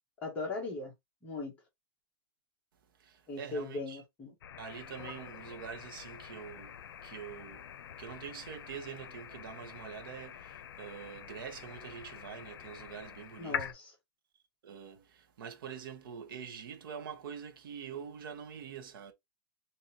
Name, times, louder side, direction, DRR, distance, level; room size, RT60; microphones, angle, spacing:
voice 1, 0.2-0.9 1.2-1.6 3.3-4.3 13.4-13.9, left 3 dB, 10° left, 1.5 m, -38 dB
voice 2, 3.0-4.0 4.6-13.7 14.6-19.1, right 7 dB, 65° right, 1.0 m, -45 dB
sound 1, 4.4-13.7, left 9 dB, 80° left, 0.6 m, -45 dB
3.9 x 3.0 x 2.8 m
supercardioid pair, 175°, 12 cm